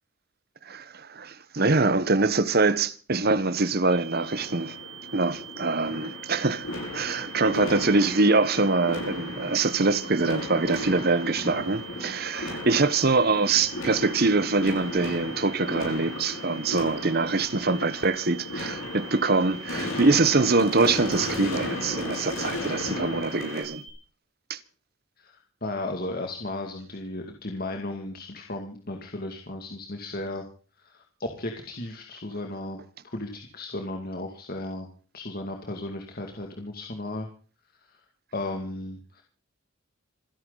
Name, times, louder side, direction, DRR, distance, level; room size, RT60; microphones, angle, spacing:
voice 1, 0.7-4.7 5.1-6.7 6.9-23.8 24.5-24.6, right 3 dB, 50° right, 1.2 m, -24 dB
sound 1, 3.9-23.9, right 11 dB, 25° right, 6.0 m, -44 dB
sound 2, 4.2-23.6, left 2 dB, 85° left, 7.6 m, -35 dB
voice 2, 25.2-30.5 30.8-32.8 33.1-34.9 35.1-37.3 37.8-38.0 38.3-39.2, left 2 dB, 45° left, 2.3 m, -35 dB
27.5 x 11.0 x 4.0 m
head